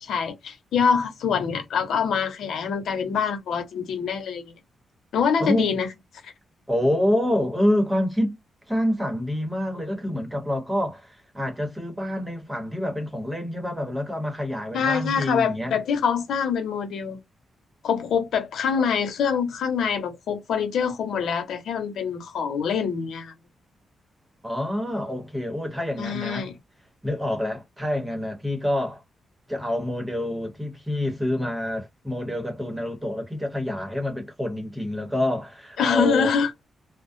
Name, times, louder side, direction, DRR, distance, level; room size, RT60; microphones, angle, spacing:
voice 1, 0.0-4.5 5.1-5.9 6.2-6.3 14.7-17.2 17.8-23.3 26.0-26.6 35.8-36.5, left 6 dB, 85° left, 0.9 m, -25 dB
voice 2, 5.4-5.7 6.7-8.4 8.7-15.7 24.4-26.5 27.0-29.0 29.5-36.3, left 1 dB, 10° right, 1.0 m, -27 dB
2.3 x 2.1 x 2.5 m
wide cardioid pair, 160°, 0 cm